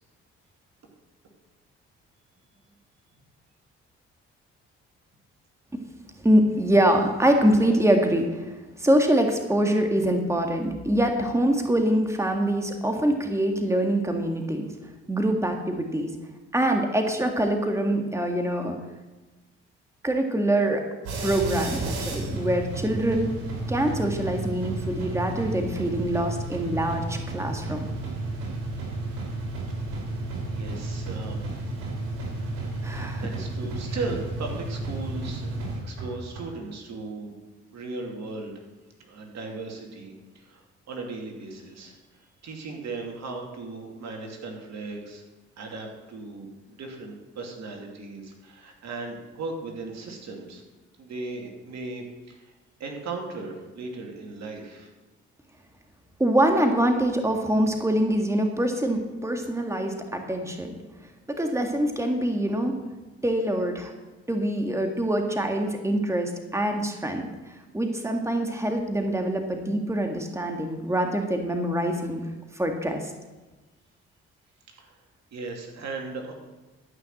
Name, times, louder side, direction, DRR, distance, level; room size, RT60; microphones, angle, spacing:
voice 1, 6.2-8.5 8.8-14.7 15.1-16.1 16.5-18.8 20.0-20.8 21.2-23.3 23.7-27.9 32.8-33.2 56.2-60.8 61.3-62.8 63.2-63.9 64.3-67.3 67.7-72.2 72.6-73.0, right 1 dB, 10° right, 4 dB, 1.9 m, -24 dB
sound 1, 21.0-36.4, right 2 dB, 90° right, 3.0 m, -32 dB
voice 2, 30.5-31.7 32.2-32.5 33.2-35.5 35.8-37.4 37.7-38.7 39.0-45.2 45.6-50.6 51.0-52.5 52.8-54.9 74.8-75.0 75.3-76.3, right 3 dB, 65° right, 1 dB, 2.7 m, -37 dB
13.0 x 6.0 x 7.8 m, 1.2 s
supercardioid pair, 55°, 29 cm